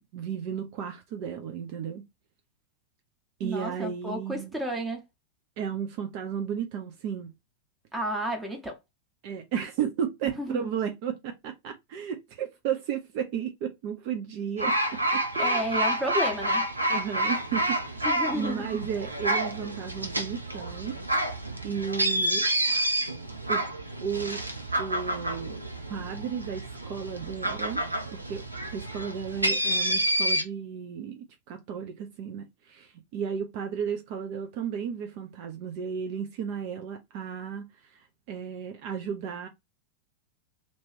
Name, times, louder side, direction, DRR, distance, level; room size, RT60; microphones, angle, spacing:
voice 1, 0.0-2.0 3.4-4.5 5.6-7.3 9.2-14.8 15.1-15.6 16.9-18.0 18.3-21.0 21.6-22.5 23.5-23.6 24.0-24.4 24.8-25.6 25.9-27.8 28.1-37.6 37.9-38.0 38.3-39.5, right 8 dB, 45° right, 0.6 m, -34 dB
voice 2, 3.4-5.0 7.9-8.8 10.2-10.7 15.4-16.7 18.0-18.7, equal, 10° right, 1.3 m, -32 dB
sound 1, 14.6-30.4, right 1 dB, 85° right, 0.7 m, -29 dB
3.0 x 3.0 x 4.3 m
figure-of-eight pair, 90°, 0 cm